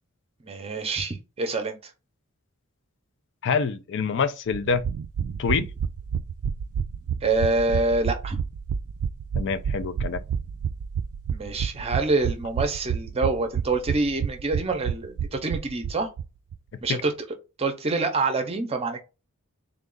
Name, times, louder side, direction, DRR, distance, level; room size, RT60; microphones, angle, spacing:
voice 1, 0.4-1.8 7.2-8.4 11.3-16.1 16.8-17.1 17.6-19.0, right 3 dB, 25° right, 0.6 m, -26 dB
voice 2, 3.4-4.8 5.4-5.7 9.4-10.2 16.9-17.0, left 5 dB, 55° left, 0.4 m, -26 dB
sound 1, 4.5-16.3 16.5-16.6 16.8-16.9, right 7 dB, 70° right, 0.3 m, -29 dB
3.6 x 2.4 x 3.7 m
head